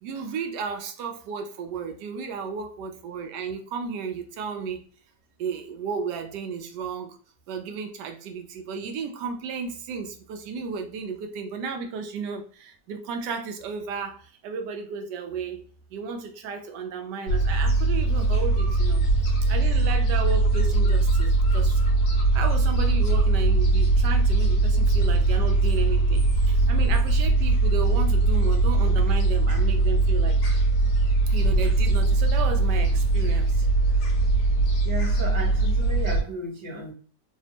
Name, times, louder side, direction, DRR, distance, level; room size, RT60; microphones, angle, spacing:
voice 1, 0.0-4.8 5.4-7.2 7.5-15.6 15.9-21.8 22.3-30.4 31.3-33.7, right 5 dB, 80° right, 1.2 m, -33 dB
Gull seagull, 17.3-36.2, right 2 dB, 65° left, 1.3 m, -21 dB
voice 2, 34.8-36.9, equal, 25° right, 0.6 m, -34 dB
3.4 x 2.0 x 2.8 m
omnidirectional pair, 1.8 m